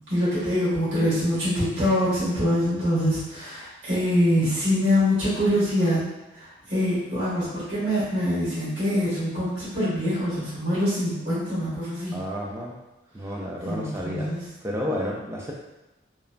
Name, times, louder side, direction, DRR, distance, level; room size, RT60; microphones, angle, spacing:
voice 1, 0.1-6.1 6.3-12.2 13.6-14.5, equal, 60° right, -11 dB, 1.4 m, -24 dB
voice 2, 12.1-12.8 13.1-14.3 14.6-15.5, equal, 15° right, -2 dB, 0.3 m, -31 dB
3.0 x 2.2 x 2.4 m, 1.0 s
head